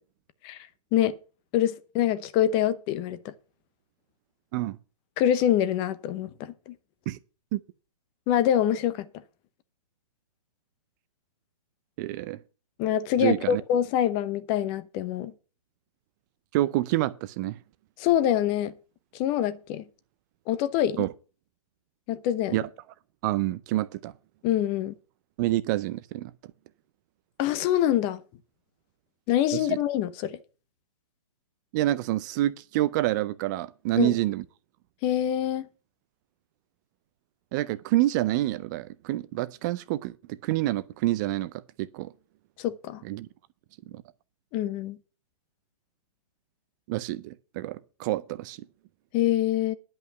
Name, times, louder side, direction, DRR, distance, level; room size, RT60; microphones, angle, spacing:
voice 1, 1.5-3.3 5.2-6.7 8.3-9.1 12.8-15.3 18.0-18.7 19.1-19.8 20.5-21.1 22.1-22.6 24.4-24.9 27.4-28.2 29.3-30.4 34.0-34.1 35.0-35.7 42.6-43.0 44.5-45.0 49.1-49.7, left 11 dB, 25° left, 0.8 m, -25 dB
voice 2, 12.0-12.4 13.2-13.6 16.5-17.6 21.0-21.1 22.5-22.6 23.2-24.1 25.4-26.3 29.5-29.8 31.7-34.4 37.5-42.1 43.0-43.3 43.9-44.0 46.9-48.6, right 16 dB, 30° right, 0.5 m, -27 dB
10.5 x 5.5 x 7.7 m
hypercardioid pair, 135°, 20 cm